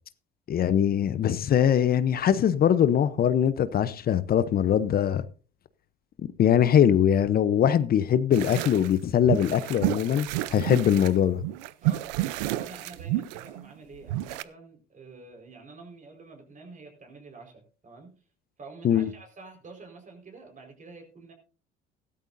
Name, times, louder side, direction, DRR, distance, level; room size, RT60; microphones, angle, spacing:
voice 1, 0.5-5.3 6.4-11.4 18.8-19.1, left 9 dB, 45° left, 0.8 m, -22 dB
sound 1, 8.3-8.9 9.2-11.1 11.4-14.4, right 15 dB, 90° right, 0.6 m, -30 dB
voice 2, 11.8-18.1 18.6-21.3, right 3 dB, 35° right, 4.6 m, -47 dB
16.0 x 12.5 x 2.6 m
supercardioid pair, 80°, 21 cm